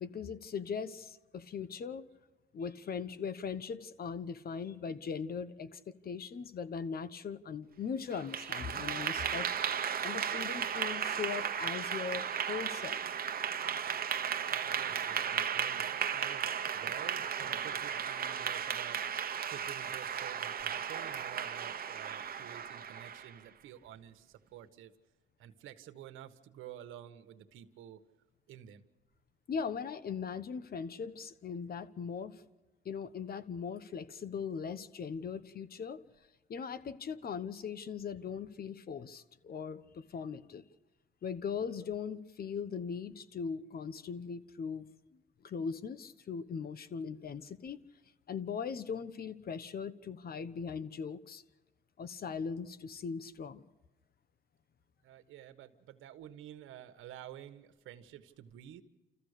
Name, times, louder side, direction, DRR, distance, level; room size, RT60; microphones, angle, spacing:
voice 1, 0.0-2.0 2.5-9.7 10.0-13.0 29.5-32.4 32.8-36.0 36.5-40.6 41.2-44.9 45.4-47.8 48.3-51.4 52.0-53.6, left 6 dB, 50° left, 13 dB, 1.2 m, -39 dB
Clapping / Applause, 8.1-23.4, right 8 dB, 50° right, 1.2 m, -35 dB
voice 2, 14.4-24.9 25.4-28.0 28.5-28.8 55.0-58.8, right 11 dB, 90° right, 9 dB, 1.4 m, -50 dB
29.0 x 14.5 x 6.6 m, 1.1 s
cardioid pair, 90°, 20 cm